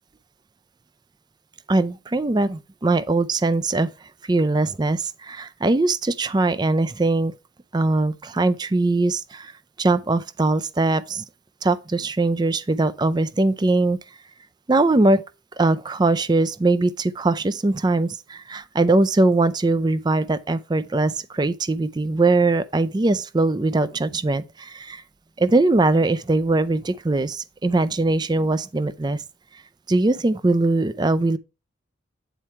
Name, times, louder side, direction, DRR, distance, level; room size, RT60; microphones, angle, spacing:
voice 1, 1.7-3.9 4.3-7.3 7.7-9.5 9.8-11.2 11.6-14.0 14.7-15.2 15.6-25.0 25.4-29.2 29.9-31.4, right 2 dB, 20° right, 0.4 m, -21 dB
9.1 x 4.3 x 4.6 m
head